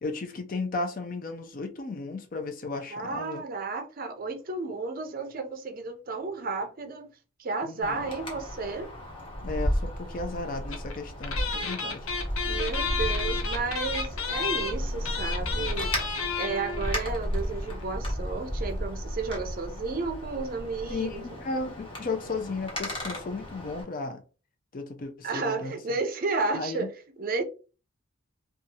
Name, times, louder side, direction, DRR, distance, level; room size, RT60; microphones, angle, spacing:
voice 1, 0.0-3.4 7.6-8.0 9.4-12.1 15.6-15.9 20.9-24.2 24.7-25.8 26.5-26.9, left 3 dB, 40° left, 0.4 m, -34 dB
voice 2, 2.9-7.1 7.4-8.9 12.4-15.9 16.3-21.3 25.2-26.9 27.2-27.4, right 4 dB, 45° right, 0.5 m, -32 dB
Wind, 7.8-23.8, equal, 25° left, 0.8 m, -34 dB
sound 1, 10.7-11.0 11.2-17.1 17.4-17.5 17.7-17.8, left 5 dB, 85° left, 0.6 m, -32 dB
2.7 x 2.4 x 2.7 m
head